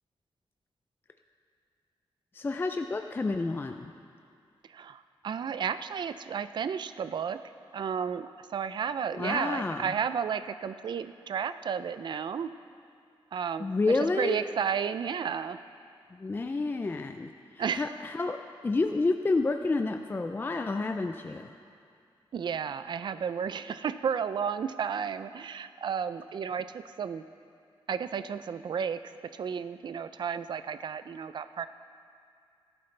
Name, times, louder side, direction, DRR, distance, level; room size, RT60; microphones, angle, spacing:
voice 1, 2.3-3.9 9.1-9.9 13.6-14.4 16.2-17.3 17.5-21.5, left 3 dB, 20° left, 6 dB, 0.4 m, -29 dB
voice 2, 4.7-7.4 7.7-12.5 13.3-15.6 17.6-17.9 22.3-27.2 27.9-31.7, right 7 dB, 50° right, 12 dB, 0.4 m, -32 dB
18.0 x 12.0 x 3.3 m, 2.3 s
wide cardioid pair, 135°, 10 cm